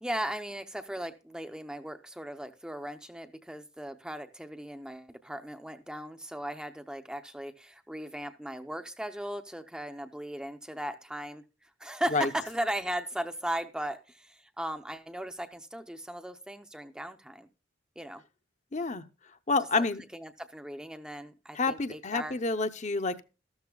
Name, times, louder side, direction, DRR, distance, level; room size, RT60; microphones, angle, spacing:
voice 1, 0.0-17.5 18.0-18.2 19.8-19.9 20.1-22.3, right 1 dB, 5° right, 0.6 m, -37 dB
voice 2, 18.7-19.0 19.5-20.0 21.5-23.2, left 3 dB, 35° left, 0.7 m, -28 dB
13.5 x 13.0 x 2.3 m
head